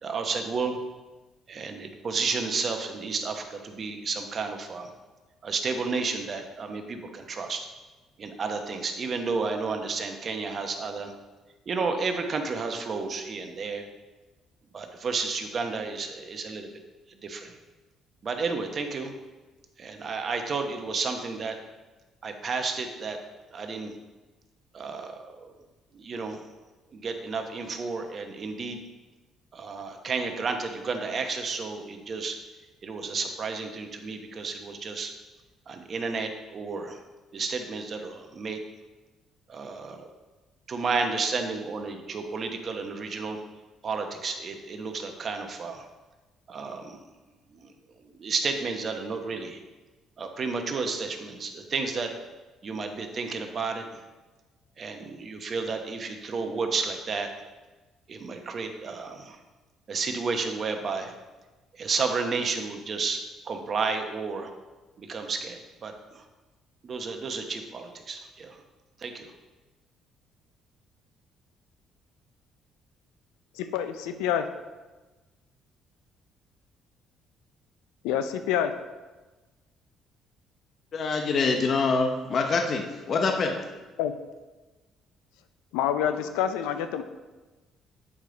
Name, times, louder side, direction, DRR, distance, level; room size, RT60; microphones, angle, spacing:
voice 1, 0.0-0.8 1.5-4.9 5.4-7.7 8.2-11.1 11.7-13.9 14.7-16.7 17.1-17.6 18.2-19.1 19.8-21.6 22.2-23.2 23.5-23.9 24.7-25.5 25.9-26.4 26.9-28.8 29.5-32.4 32.8-35.1 35.7-37.0 37.3-38.6 39.5-40.1 40.7-43.4 43.8-45.9 46.5-47.0 47.5-49.6 50.2-52.1 52.6-54.0 54.8-57.3 58.1-59.4 59.9-61.1 61.7-63.2 63.4-64.5 65.0-66.2 66.8-68.6 69.0-69.3, right 4 dB, 50° right, 5 dB, 1.1 m, -32 dB
voice 2, 73.5-74.5 78.0-78.7 84.0-84.1 85.7-87.0, left 9 dB, 90° left, 9 dB, 0.5 m, -27 dB
voice 3, 80.9-83.6, left 4 dB, 55° left, 3 dB, 0.9 m, -25 dB
8.5 x 5.1 x 3.9 m, 1.2 s
supercardioid pair, 70°, 0 cm